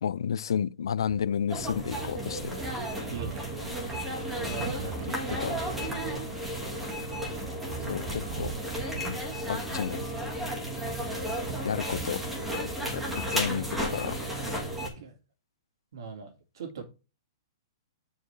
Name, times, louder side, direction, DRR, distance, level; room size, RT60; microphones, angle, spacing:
voice 1, 0.0-2.6 5.1-5.6 7.9-8.5 9.5-10.0 11.6-12.2 12.9-14.6, left 8 dB, 90° left, 0.4 m, -31 dB
sound 1, 1.1-9.1, right 6 dB, 35° right, 1.0 m, -42 dB
sound 2, 1.5-14.9, equal, 5° right, 1.5 m, -33 dB
voice 2, 3.1-3.5 4.4-5.4 5.8-5.9 14.9-15.1 15.9-16.8, right 6 dB, 60° right, 2.0 m, -41 dB
8.8 x 4.6 x 3.3 m
hypercardioid pair, 175°, 2 cm